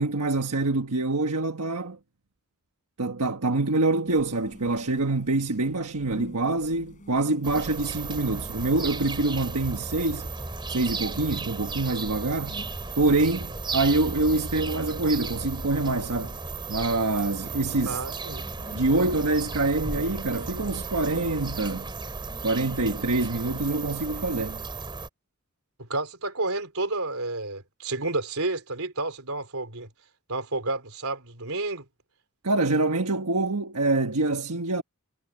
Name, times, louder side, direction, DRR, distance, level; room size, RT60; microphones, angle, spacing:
voice 1, 0.0-2.0 3.0-10.3 10.7-12.6 13.0-16.4 16.7-18.0 18.7-21.9 22.4-24.6 32.4-34.8, right 2 dB, 90° right, 1.4 m, -25 dB
sound 1, 4.0-23.7, equal, 35° left, 7.7 m, -52 dB
sound 2, 7.4-25.1, right 3 dB, 20° right, 3.8 m, -35 dB
voice 2, 17.9-18.5 25.8-29.9 30.3-31.9, right 2 dB, 70° right, 4.2 m, -30 dB
head